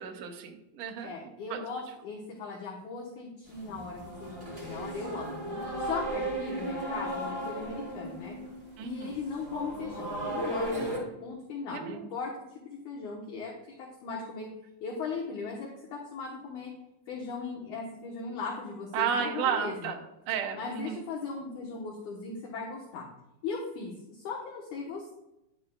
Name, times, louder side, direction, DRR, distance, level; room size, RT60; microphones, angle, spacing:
voice 1, 0.0-1.1 1.5-1.6 5.5-5.8 8.8-9.2 10.8-11.2 11.7-12.1 18.9-20.0 20.3-21.0, right 7 dB, 75° right, 3 dB, 1.6 m, -33 dB
voice 2, 1.0-5.4 5.8-8.4 8.8-12.3 12.7-14.5 14.8-16.7 17.1-19.9 20.5-23.1 23.4-25.1, left 4 dB, 65° left, -3 dB, 2.3 m, -38 dB
sound 1, 3.5-11.0, right 1 dB, 20° right, 2.0 m, -36 dB
10.0 x 9.6 x 2.3 m, 0.88 s
omnidirectional pair, 4.3 m